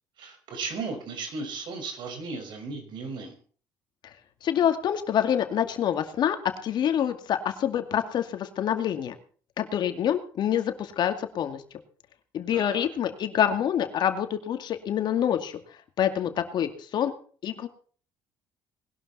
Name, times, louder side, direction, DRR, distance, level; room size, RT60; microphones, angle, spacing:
voice 1, 0.2-3.3 12.5-12.9, right 4 dB, 65° right, 5 dB, 5.7 m, -36 dB
voice 2, 4.4-6.4 6.6-9.1 9.6-11.6 12.3-15.6 16.0-17.1 17.4-17.7, left 9 dB, 60° left, 8 dB, 2.3 m, -26 dB
20.0 x 12.0 x 4.3 m, 0.43 s
supercardioid pair, 80°, 8 cm